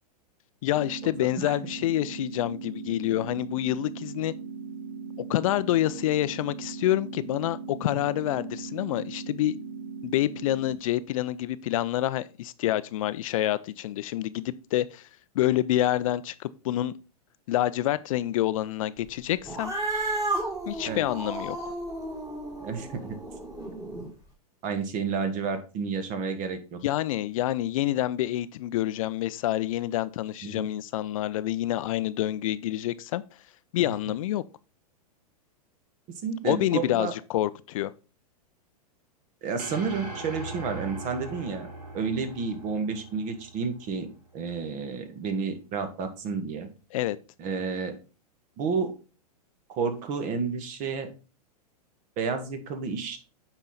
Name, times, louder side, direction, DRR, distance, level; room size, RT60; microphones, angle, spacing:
voice 1, 0.6-4.3 5.3-9.6 10.0-15.1 15.3-16.9 17.5-19.7 20.7-21.6 26.8-33.2 33.7-34.4 36.4-37.9 46.9-47.2, left 14 dB, 60° left, 0.5 m, -27 dB
sound 1, 0.7-10.7, right 5 dB, 60° right, 3.5 m, -39 dB
Cat, 19.4-24.1, right 2 dB, 20° right, 3.0 m, -33 dB
voice 2, 22.6-23.2 24.6-26.8 30.4-30.7 36.2-37.1 39.4-41.7 41.9-46.7 47.4-48.0 48.6-48.9 49.7-51.1 52.2-53.2, right 5 dB, 40° right, 1.6 m, -31 dB
sound 2, 39.6-44.0, right 2 dB, 90° right, 3.0 m, -40 dB
8.8 x 4.6 x 3.9 m
hypercardioid pair, 105°, 20 cm